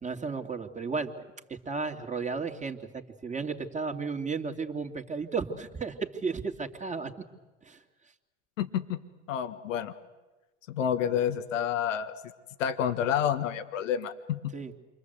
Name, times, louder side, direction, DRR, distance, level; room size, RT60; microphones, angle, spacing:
voice 1, 0.0-7.1 7.6-7.8 14.5-14.7, right 4 dB, 20° right, 4 dB, 2.7 m, -34 dB
voice 2, 8.6-9.0 9.3-9.9 10.7-12.1 12.6-14.5, left 9 dB, 75° left, 9 dB, 1.6 m, -29 dB
28.0 x 24.5 x 8.2 m, 1.1 s
hypercardioid pair, 80°, 39 cm